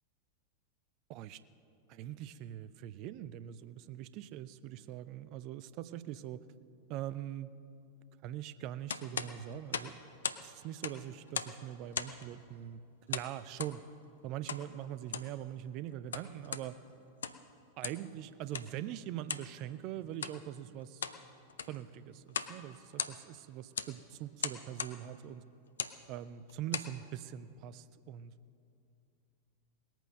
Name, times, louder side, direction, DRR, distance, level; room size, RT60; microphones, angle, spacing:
voice 1, 1.1-1.4 1.9-6.4 6.9-7.5 8.2-10.0 10.4-12.8 13.1-13.8 14.2-16.8 17.8-21.0 21.7-25.4 26.1-28.3, right 12 dB, 40° right, 15 dB, 0.5 m, -42 dB
sound 1, 8.9-10.5 10.7-11.6 11.9-12.3 13.1-13.8 14.5-14.7 15.0-15.3 15.9-16.7 17.1-17.5 17.8-18.1 18.5-18.7 19.3-19.5 20.1-20.4 20.8-21.2 21.5-21.8 22.3-22.6 22.8-23.4 23.8-23.9 24.4-25.0 25.7-26.0 26.5-26.9, left 7 dB, 65° left, 0.6 m, -38 dB
19.5 x 9.1 x 6.5 m, 2.5 s
figure-of-eight pair, 90°, 0 cm